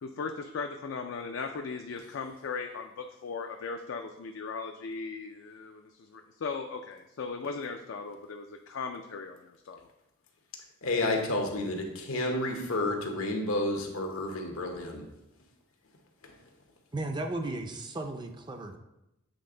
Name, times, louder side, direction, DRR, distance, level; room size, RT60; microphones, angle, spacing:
voice 1, 0.0-9.8, left 4 dB, 65° left, 4 dB, 0.4 m, -38 dB
voice 2, 10.8-15.0 16.2-16.3, left 2 dB, 85° left, 2 dB, 1.1 m, -30 dB
voice 3, 16.9-18.8, right 2 dB, 20° right, 5 dB, 0.4 m, -35 dB
7.7 x 3.4 x 3.8 m, 0.90 s
head